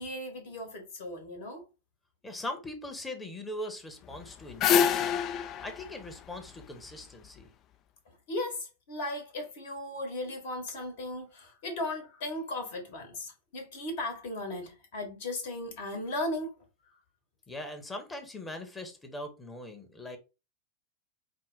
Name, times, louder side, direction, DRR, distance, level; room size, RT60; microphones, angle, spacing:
voice 1, 0.0-1.6 8.1-16.5 16.9-17.0, left 1 dB, 50° left, 1.3 m, -37 dB
voice 2, 2.2-5.2 5.6-7.5 17.5-20.2, left 1 dB, 10° left, 1.0 m, -41 dB
sound 1, 4.1-7.3, left 8 dB, 35° left, 0.3 m, -28 dB
4.8 x 2.1 x 3.9 m
figure-of-eight pair, 90°, 0 cm